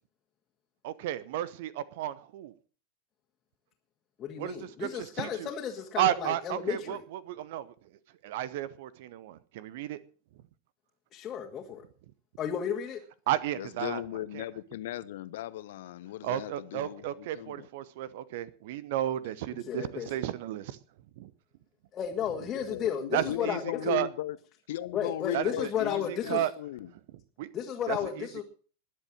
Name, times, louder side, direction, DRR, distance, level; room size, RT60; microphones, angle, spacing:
voice 1, 0.8-2.5 4.4-5.5 6.0-7.7 8.2-10.0 13.3-14.0 14.3-14.4 16.2-20.8 21.2-21.3 23.1-24.1 25.3-26.0 26.3-26.5 27.4-27.5 27.9-28.4, right 13 dB, 50° right, 19 dB, 0.9 m, -33 dB
voice 2, 4.2-7.0 11.1-11.8 12.4-13.0 19.5-20.1 21.9-23.6 24.9-26.5 27.5-28.4, left 9 dB, 30° left, 0 dB, 2.1 m, -33 dB
voice 3, 13.6-17.7 22.5-24.4 24.7-26.9, left 13 dB, 55° left, 16 dB, 0.9 m, -37 dB
20.5 x 7.8 x 6.4 m, 0.41 s
figure-of-eight pair, 90°, 0 cm